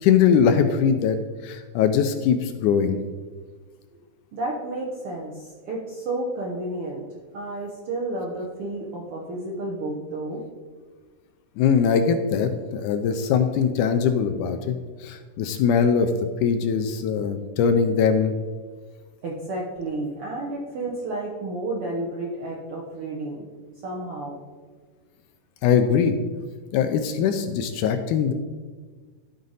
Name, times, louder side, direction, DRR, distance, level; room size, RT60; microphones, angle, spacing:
voice 1, 0.0-1.2 1.4-3.0 11.6-16.1 16.4-18.3 25.6-26.2 26.7-28.3, left 7 dB, 80° left, 7 dB, 1.9 m, -21 dB
voice 2, 4.3-7.0 7.3-10.4 19.2-23.5 23.8-24.4, right 2 dB, 70° right, -3 dB, 1.3 m, -31 dB
12.5 x 5.2 x 4.0 m, 1.5 s
omnidirectional pair, 3.9 m